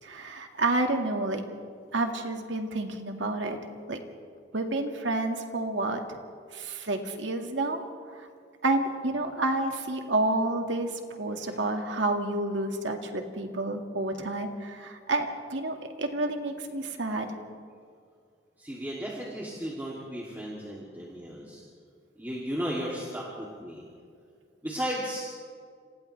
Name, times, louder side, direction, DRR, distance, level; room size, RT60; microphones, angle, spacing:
voice 1, 0.0-1.4 1.9-3.6 3.9-4.0 4.5-6.0 6.5-7.8 8.2-8.3 8.6-17.3, right 2 dB, 90° right, 3 dB, 2.1 m, -29 dB
voice 2, 18.6-21.6 22.2-23.8 24.6-25.3, equal, 10° right, -6 dB, 2.9 m, -35 dB
29.5 x 26.5 x 3.4 m, 2.2 s
head